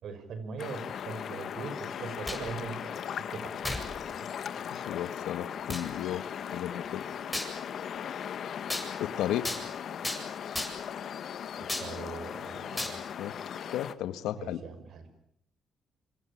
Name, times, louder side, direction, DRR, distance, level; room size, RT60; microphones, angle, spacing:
voice 1, 0.0-3.6 4.1-4.3 11.6-13.0 14.3-15.1, right 5 dB, 70° right, 11 dB, 5.9 m, -41 dB
sound 1, 0.6-13.9, left 8 dB, 65° left, 1.7 m, -38 dB
sound 2, 2.0-2.5 3.6-3.9 4.5-4.6 5.7-5.9 7.3-7.5 8.7-8.9 9.4-9.6 10.0-10.2 10.5-10.9 11.7-11.9 12.8-12.9, left 1 dB, 5° left, 7.8 m, -34 dB
voice 2, 4.7-6.3 6.5-7.0 9.0-9.5 13.2-13.3 13.7-14.6, left 12 dB, 90° left, 12 dB, 1.6 m, -34 dB
27.0 x 25.5 x 8.6 m, 0.70 s
cardioid pair, 90°, 0 cm